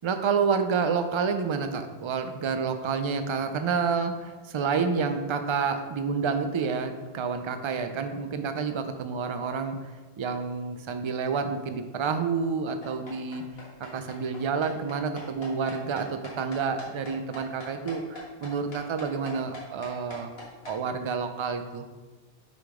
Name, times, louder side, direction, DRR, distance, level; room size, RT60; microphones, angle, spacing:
voice 1, 0.0-9.8 10.2-13.4 13.8-20.3 20.7-21.8, right 5 dB, 55° right, 8 dB, 0.3 m, -29 dB
sound 1, 12.8-20.8, left 1 dB, 65° left, 1.8 m, -42 dB
5.8 x 3.9 x 4.9 m, 1.3 s
omnidirectional pair, 1.1 m